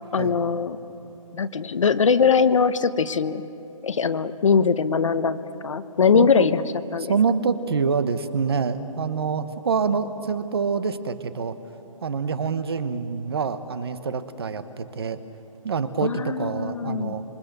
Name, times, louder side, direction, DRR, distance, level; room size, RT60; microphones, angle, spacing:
voice 1, 0.1-0.8 1.3-3.4 3.8-6.6 6.9-7.1 16.0-17.2, left 6 dB, 60° left, 12 dB, 1.1 m, -21 dB
voice 2, 6.1-6.5 7.1-11.5 12.0-15.2 15.6-17.2, right 5 dB, 45° right, 12 dB, 1.2 m, -26 dB
27.0 x 24.0 x 6.8 m, 2.9 s
hypercardioid pair, 170°, 18 cm